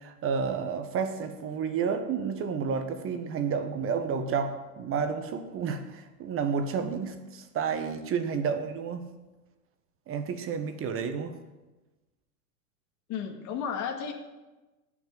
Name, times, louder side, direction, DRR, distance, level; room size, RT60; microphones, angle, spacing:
voice 1, 0.0-9.0 10.1-11.3, right 6 dB, 25° right, 8 dB, 1.2 m, -31 dB
voice 2, 13.1-14.1, left 7 dB, 35° left, 3 dB, 2.2 m, -33 dB
18.0 x 6.2 x 7.6 m, 1.1 s
hypercardioid pair, 120°, 48 cm